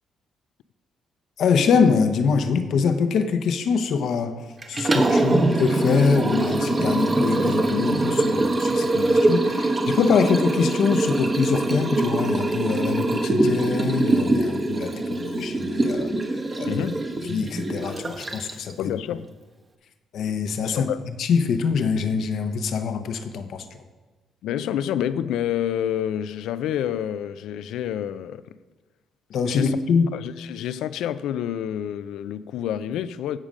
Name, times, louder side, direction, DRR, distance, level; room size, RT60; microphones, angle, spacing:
voice 1, 1.4-16.1 16.6-16.9 17.2-19.0 20.1-23.8 29.3-30.1, left 5 dB, 70° left, 0.8 m, -24 dB
Liquid, 4.6-18.7, right 2 dB, 30° right, 1.2 m, -23 dB
voice 2, 16.7-17.0 18.8-19.3 20.6-21.0 24.4-28.5 29.5-29.8 30.1-33.4, left 10 dB, 85° left, 0.4 m, -28 dB
15.0 x 5.0 x 5.3 m
cardioid pair, 90°, 0 cm